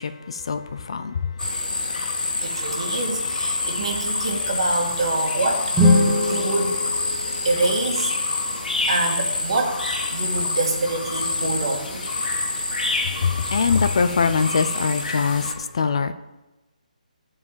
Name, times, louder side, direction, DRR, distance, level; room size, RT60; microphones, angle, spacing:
voice 1, 0.0-1.5 13.0-16.1, left 5 dB, 40° left, 0.5 m, -23 dB
sound 1, 1.4-15.5, left 3 dB, 90° left, 1.9 m, -27 dB
voice 2, 2.4-5.7 6.2-6.8 7.4-8.1 8.8-9.8 10.1-12.1, right 2 dB, 45° right, 1.9 m, -25 dB
sound 2, 5.7-7.9, left 1 dB, 5° right, 0.7 m, -21 dB
11.0 x 4.8 x 7.5 m
hypercardioid pair, 175°, 4 cm